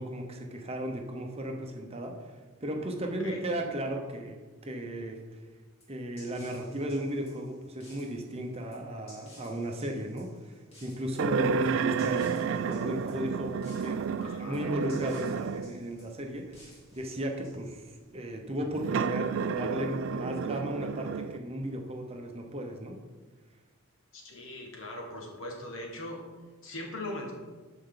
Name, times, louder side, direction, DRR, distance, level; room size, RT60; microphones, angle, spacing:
voice 1, 0.0-2.3 2.6-5.2 5.9-17.8 18.1-23.0, equal, 30° right, 2 dB, 0.9 m, -35 dB
voice 2, 3.0-3.4 14.2-14.6 24.1-26.2 26.6-27.3, left 1 dB, 60° left, 0 dB, 1.9 m, -40 dB
sound 1, 5.8-18.0, left 1 dB, 30° left, 2.8 m, -57 dB
sound 2, 11.2-15.8 16.5-16.6 18.7-21.4, right 6 dB, 60° right, 0.3 m, -31 dB
13.0 x 4.6 x 4.0 m, 1.3 s
head